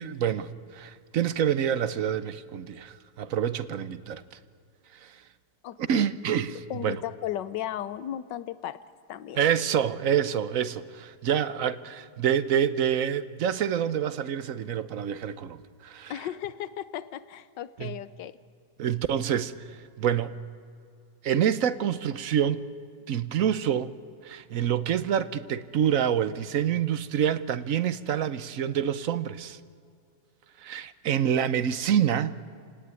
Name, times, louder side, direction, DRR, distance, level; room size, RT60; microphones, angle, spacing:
voice 1, 0.0-4.2 5.0-5.1 5.8-6.6 6.8-7.0 9.4-16.1 17.8-18.0 18.8-19.5 20.0-20.3 21.2-22.6 23.1-23.9 24.2-29.6 30.6-32.3, right 9 dB, 60° right, 1.1 m, -27 dB
voice 2, 5.6-6.1 6.5-8.8 9.1-9.4 16.1-18.4, left 11 dB, 90° left, 1.5 m, -35 dB
29.0 x 18.0 x 9.5 m
omnidirectional pair, 1.8 m